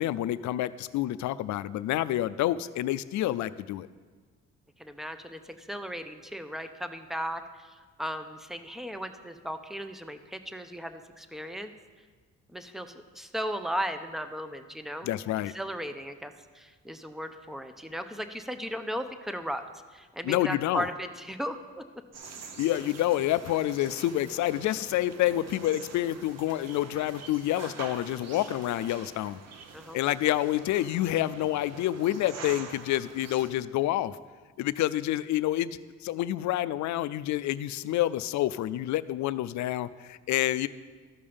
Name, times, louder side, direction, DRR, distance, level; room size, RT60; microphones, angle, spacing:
voice 1, 0.0-3.9 15.0-15.5 20.2-20.9 22.6-29.4 29.9-34.2 34.6-40.7, left 14 dB, 70° left, 15 dB, 0.4 m, -28 dB
voice 2, 4.8-7.4 8.0-11.7 12.5-15.1 15.5-19.6 19.9-21.8 29.7-30.0, equal, ahead, 9 dB, 0.6 m, -36 dB
sound 1, 22.1-33.5, right 5 dB, 60° right, 0.9 m, -45 dB
13.0 x 5.4 x 5.1 m, 1.5 s
cardioid pair, 90°, 30 cm